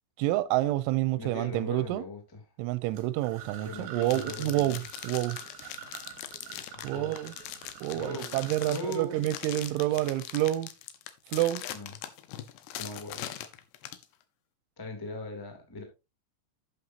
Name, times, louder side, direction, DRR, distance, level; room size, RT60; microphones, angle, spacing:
voice 1, 0.2-2.0 2.6-5.4 6.8-7.3 7.8-10.7 11.3-11.6, right 15 dB, 90° right, 3.0 m, -28 dB
voice 2, 1.2-2.2 3.6-4.8 6.7-7.1 7.9-8.4 8.6-9.3 11.7-11.9 12.7-13.3 14.8-15.8, left 1 dB, 10° left, 1.4 m, -39 dB
sound 1, 2.9-9.7, right 9 dB, 70° right, 4.3 m, -47 dB
sound 2, 4.0-14.1, left 12 dB, 75° left, 2.9 m, -41 dB
11.0 x 8.7 x 2.8 m
omnidirectional pair, 5.3 m